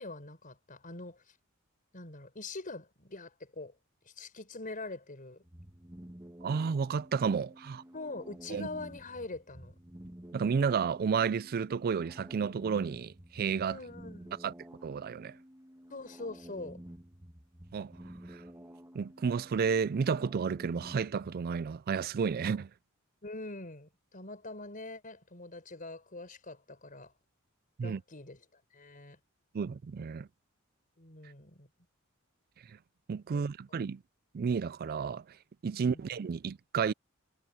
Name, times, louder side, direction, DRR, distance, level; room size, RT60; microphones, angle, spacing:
voice 1, 0.0-1.4 1.9-3.8 4.1-5.4 7.9-9.7 13.6-14.3 15.9-16.8 23.2-27.1 27.8-29.2 31.0-31.7 33.3-33.4 35.7-36.1, left 2 dB, 40° left, 5.4 m, -44 dB
sound 1, 5.4-21.5, equal, 15° right, 1.4 m, -51 dB
voice 2, 6.4-7.8 8.5-8.7 10.3-13.8 14.4-14.5 14.8-15.4 17.7-17.9 18.3-18.4 18.9-22.7 27.8-28.0 29.5-30.3 33.1-34.0 34.3-35.4 35.6-36.9, right 6 dB, 45° right, 0.4 m, -31 dB
head